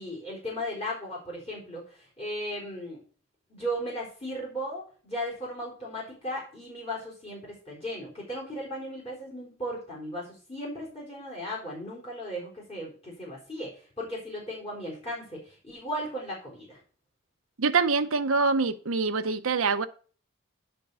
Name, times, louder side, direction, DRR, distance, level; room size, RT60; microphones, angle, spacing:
voice 1, 0.0-3.0 3.5-16.8, equal, 30° left, 4.0 m, -36 dB
voice 2, 17.6-19.9, right 4 dB, 85° right, 0.8 m, -25 dB
10.5 x 4.5 x 6.8 m
head